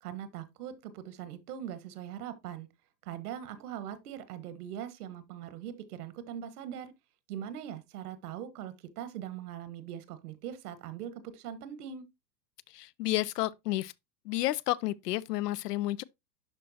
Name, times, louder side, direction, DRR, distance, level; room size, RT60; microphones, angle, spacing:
voice 1, 0.0-2.7 3.0-6.9 7.3-12.0, right 10 dB, 65° right, 1.3 m, -41 dB
voice 2, 12.7-13.9 14.2-16.0, left 16 dB, 70° left, 0.6 m, -31 dB
11.5 x 4.2 x 2.7 m
hypercardioid pair, 135°, 50 cm